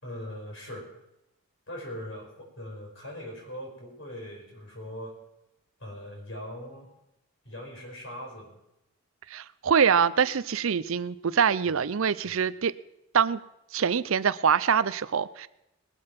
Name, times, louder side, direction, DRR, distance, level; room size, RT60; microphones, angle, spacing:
voice 1, 0.0-0.9 1.7-5.2 5.8-6.9 7.4-8.6 12.2-12.4, equal, 60° left, 0 dB, 4.6 m, -40 dB
voice 2, 9.3-12.7 13.1-13.4 13.7-15.5, right 7 dB, 65° right, 17 dB, 0.5 m, -24 dB
20.5 x 7.7 x 5.9 m, 0.88 s
head